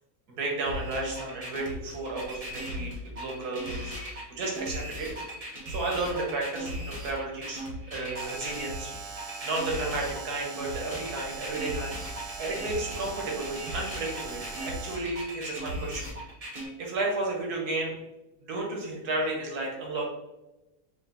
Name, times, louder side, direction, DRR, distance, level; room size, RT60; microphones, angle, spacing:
voice 1, 0.4-5.1 5.7-7.6 7.9-16.1 16.8-17.9 18.4-20.1, right 2 dB, 85° right, -1 dB, 1.6 m, -33 dB
sound 1, 0.7-16.7, equal, 30° right, 0.8 m, -38 dB
Alarm, 8.1-15.2, right 5 dB, 65° right, 1.0 m, -41 dB
4.9 x 2.8 x 2.8 m, 0.97 s
omnidirectional pair, 1.6 m